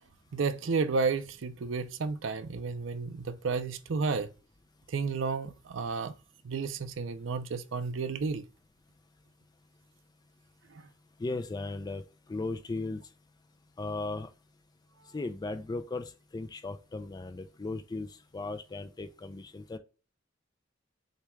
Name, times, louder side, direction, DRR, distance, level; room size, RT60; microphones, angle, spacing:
voice 1, 0.3-4.3 4.9-6.1 6.4-8.4, right 4 dB, 70° right, 0.5 m, -32 dB
voice 2, 11.2-12.0 12.3-13.0 13.8-14.3 15.1-18.1 18.3-19.8, left 3 dB, 20° left, 0.3 m, -36 dB
6.6 x 2.3 x 3.1 m
head